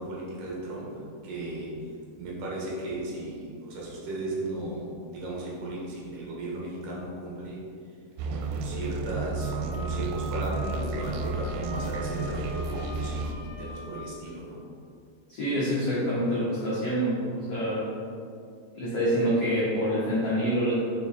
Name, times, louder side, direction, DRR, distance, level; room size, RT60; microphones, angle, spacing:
voice 1, 0.0-1.7 2.2-7.6 8.2-14.6, right 2 dB, 65° right, -4 dB, 2.3 m, -36 dB
Tense Loop, 8.2-13.3, right 3 dB, 85° right, 2.8 m, -32 dB
Wind instrument woodwind instrument, 9.3-14.1, equal, 60° left, 2.3 m, -42 dB
voice 2, 15.3-17.9 18.7-20.7, equal, 80° left, -10 dB, 1.4 m, -26 dB
6.2 x 6.1 x 3.8 m, 2.4 s
omnidirectional pair, 5.1 m